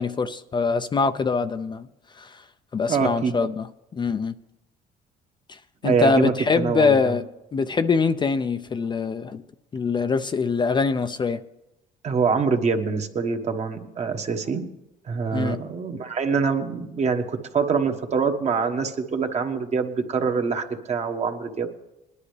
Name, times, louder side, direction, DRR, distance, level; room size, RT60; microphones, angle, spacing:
voice 1, 0.0-1.9 2.2-2.3 2.7-3.7 4.0-4.3 5.8-7.2 7.5-9.4 9.7-11.4 15.3-15.6, left 4 dB, 25° left, 0.5 m, -23 dB
voice 2, 2.9-3.5 5.8-7.1 12.0-14.7 15.1-21.8, right 5 dB, 40° right, 1.3 m, -25 dB
20.5 x 11.0 x 3.3 m
cardioid pair, 110°, 17 cm